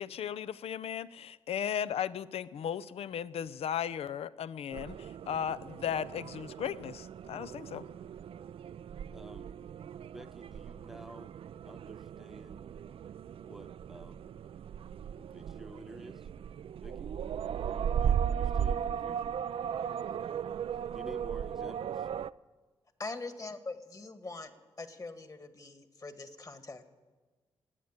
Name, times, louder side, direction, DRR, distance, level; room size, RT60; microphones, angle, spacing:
voice 1, 0.0-7.8, left 9 dB, 70° left, 16 dB, 0.5 m, -36 dB
sound 1, 4.7-22.3, right 8 dB, 60° right, 0.4 m, -37 dB
voice 2, 9.1-9.6 10.0-11.3 11.7-12.6 13.4-14.2 15.3-16.3 16.8-17.1 17.6-19.3 20.9-22.1, equal, 5° right, 10 dB, 0.9 m, -51 dB
voice 3, 23.0-24.5 24.8-26.9, left 3 dB, 35° left, 9 dB, 1.7 m, -42 dB
18.0 x 8.2 x 8.9 m, 1.3 s
supercardioid pair, 50°, 11 cm